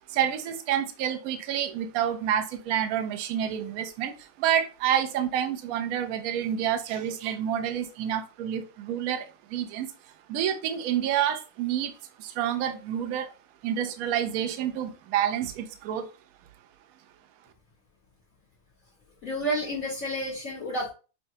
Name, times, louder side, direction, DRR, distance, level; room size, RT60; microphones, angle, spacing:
voice 1, 0.1-9.9 10.3-11.9 12.2-13.3 13.6-16.1, right 9 dB, 70° right, 0.8 m, -28 dB
voice 2, 19.2-20.9, equal, 50° left, 1.4 m, -30 dB
5.7 x 2.2 x 2.7 m
omnidirectional pair, 2.1 m